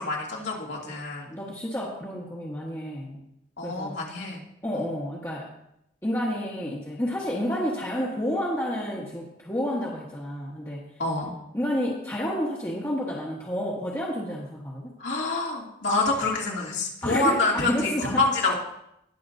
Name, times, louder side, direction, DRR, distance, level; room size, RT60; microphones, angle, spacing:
voice 1, 0.0-1.3 3.6-4.4 4.7-4.8 11.0-11.3 15.0-18.5, left 2 dB, 75° left, -3 dB, 2.6 m, -27 dB
voice 2, 1.3-3.2 3.6-4.0 4.6-5.5 6.0-10.8 11.5-14.9 17.0-18.2, equal, 15° left, -6 dB, 1.3 m, -30 dB
20.5 x 7.0 x 2.7 m, 0.80 s
head